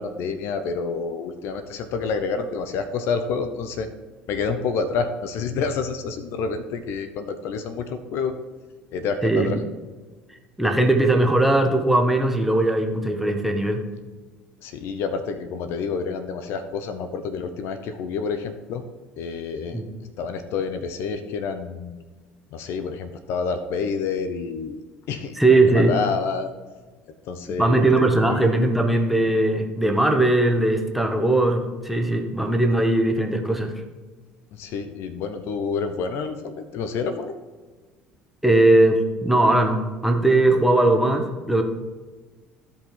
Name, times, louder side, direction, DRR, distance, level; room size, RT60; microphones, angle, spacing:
voice 1, 0.0-3.9 4.3-8.4 8.9-9.6 14.6-18.8 19.2-19.8 20.2-22.0 22.5-24.8 25.1-25.4 25.7-26.5 27.2-28.4 34.5-37.4, left 5 dB, 60° left, 9 dB, 0.8 m, -28 dB
voice 2, 10.6-13.8 19.7-19.9 25.4-25.9 27.6-33.8 38.4-41.6, right 2 dB, 5° right, 3 dB, 1.6 m, -19 dB
15.0 x 5.1 x 3.9 m, 1.3 s
hypercardioid pair, 65°, 5 cm